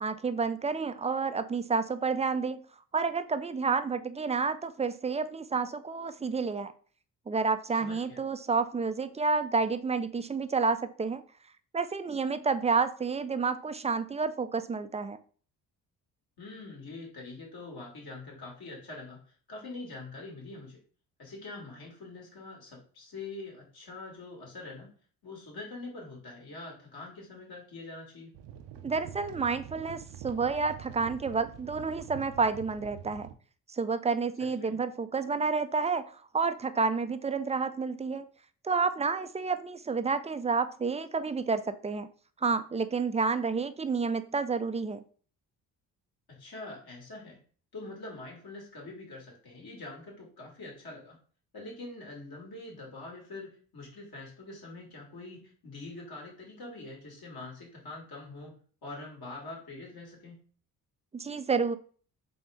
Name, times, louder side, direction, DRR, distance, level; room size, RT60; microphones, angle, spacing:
voice 1, 0.0-2.6 2.9-6.7 7.3-11.2 11.7-15.2 28.8-33.3 33.7-38.3 38.6-42.1 42.4-45.0 61.1-61.8, right 4 dB, 15° right, 11 dB, 0.4 m, -30 dB
voice 2, 7.8-8.2 16.4-20.8 21.2-24.9 25.2-28.3 34.4-34.8 46.3-47.4 47.7-51.2 51.5-60.4, left 2 dB, 55° left, -2 dB, 2.4 m, -44 dB
sound 1, 28.3-33.3, right 9 dB, 75° right, 0.7 m, -46 dB
4.1 x 3.4 x 3.6 m, 0.42 s
hypercardioid pair, 50°, 43 cm